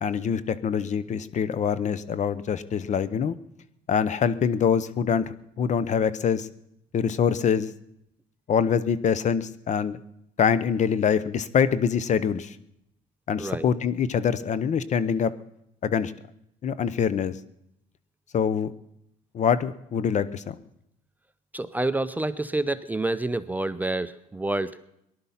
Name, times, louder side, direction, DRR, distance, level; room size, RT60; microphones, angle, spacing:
voice 1, 0.0-3.3 3.9-6.5 6.9-7.7 8.5-10.0 10.4-12.5 13.3-15.3 15.8-16.1 16.6-17.3 18.3-18.7 19.3-20.5, left 7 dB, 45° left, 16 dB, 0.8 m, -24 dB
voice 2, 13.4-13.7 21.5-24.8, right 2 dB, 10° right, 12 dB, 0.5 m, -28 dB
18.5 x 11.5 x 5.7 m, 0.79 s
cardioid pair, 110°, 17 cm